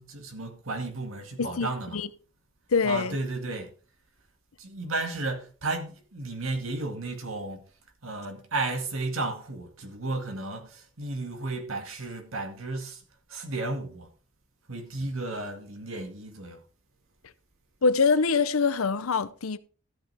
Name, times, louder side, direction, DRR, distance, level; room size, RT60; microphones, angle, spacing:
voice 1, 0.0-2.0 2.8-3.7 4.6-7.6 8.0-13.0 13.3-14.1 14.7-16.6, right 2 dB, 75° right, 2.1 m, -33 dB
voice 2, 1.4-2.1 2.7-3.2 17.8-19.6, left 5 dB, 90° left, 0.7 m, -24 dB
13.5 x 8.2 x 3.4 m
head